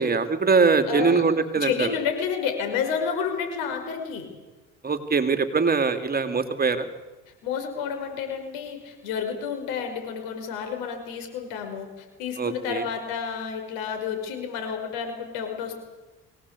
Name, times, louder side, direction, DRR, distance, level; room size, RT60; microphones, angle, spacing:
voice 1, 0.0-1.9 4.8-6.9 12.4-12.8, right 4 dB, 25° right, 9 dB, 2.4 m, -22 dB
voice 2, 0.9-1.2 1.5-4.3 7.4-15.8, left 7 dB, 85° left, 5 dB, 5.7 m, -30 dB
24.0 x 18.0 x 8.4 m, 1.2 s
supercardioid pair, 85°, 34 cm